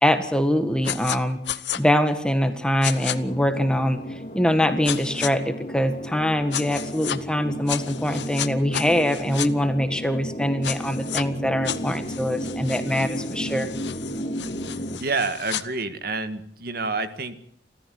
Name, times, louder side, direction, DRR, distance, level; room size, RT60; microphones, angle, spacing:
voice 1, 0.0-1.4 1.8-4.0 4.3-13.7, equal, 5° left, 8 dB, 1.6 m, -23 dB
sound 1, 0.8-1.2 1.5-1.8 2.8-3.2 4.8-5.3 6.5-7.2 7.7-9.5 10.6-11.2 11.6-15.6, left 10 dB, 90° left, 1.1 m, -32 dB
sound 2, 3.1-15.0, equal, 40° left, 2.4 m, -33 dB
voice 2, 15.0-17.4, right 3 dB, 60° right, 10 dB, 1.8 m, -28 dB
29.5 x 14.0 x 7.9 m, 0.64 s
head